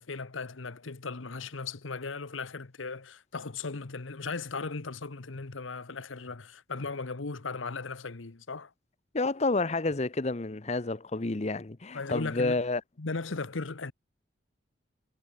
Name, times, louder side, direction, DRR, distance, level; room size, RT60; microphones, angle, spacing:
voice 1, 0.0-8.7 11.9-12.6 13.0-13.9, left 4 dB, 85° left, 1.1 m, -37 dB
voice 2, 9.1-12.8, left 3 dB, 35° left, 0.8 m, -29 dB
head